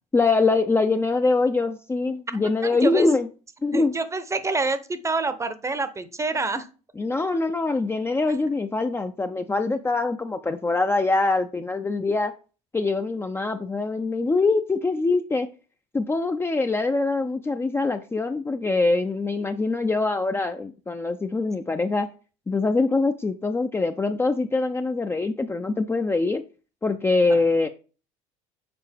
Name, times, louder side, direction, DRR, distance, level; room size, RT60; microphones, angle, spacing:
voice 1, 0.1-3.3 3.6-3.9 7.0-12.3 12.7-15.5 15.9-22.1 22.5-26.4 26.8-27.7, left 3 dB, 15° left, 7 dB, 0.5 m, -23 dB
voice 2, 2.7-3.1 3.7-6.7 27.3-27.4, right 3 dB, 20° right, 13 dB, 0.7 m, -27 dB
6.7 x 4.0 x 3.5 m, 0.36 s
supercardioid pair, 85°, 16 cm